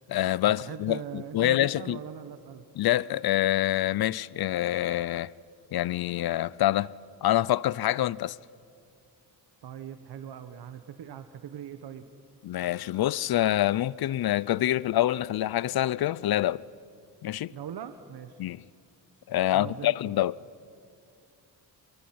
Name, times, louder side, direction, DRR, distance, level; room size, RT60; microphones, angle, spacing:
voice 1, 0.1-2.0 2.8-5.3 5.7-6.9 7.2-8.4 12.4-16.6 17.2-17.5 18.4-18.6 19.3-20.4, left 13 dB, 65° left, 0.6 m, -26 dB
voice 2, 0.6-2.7 9.6-12.1 17.5-18.4 19.5-20.2, right 8 dB, 70° right, 1.3 m, -41 dB
26.5 x 22.0 x 9.5 m
cardioid pair, 110°, 40 cm